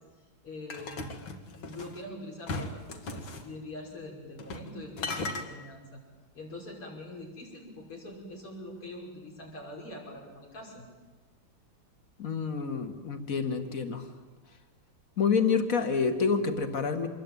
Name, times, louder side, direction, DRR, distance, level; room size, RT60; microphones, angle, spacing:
voice 1, 0.4-1.0 1.5-6.0 6.3-10.8, left 1 dB, 80° left, -1 dB, 6.6 m, -43 dB
sound 1, 0.7-2.0 2.5-3.5 4.4-4.7 5.0-5.5, left 2 dB, 65° left, 2.7 m, -37 dB
voice 2, 12.2-14.1 15.2-17.1, left 5 dB, 40° left, 7 dB, 2.3 m, -28 dB
26.5 x 22.0 x 8.9 m, 1.3 s
omnidirectional pair, 2.4 m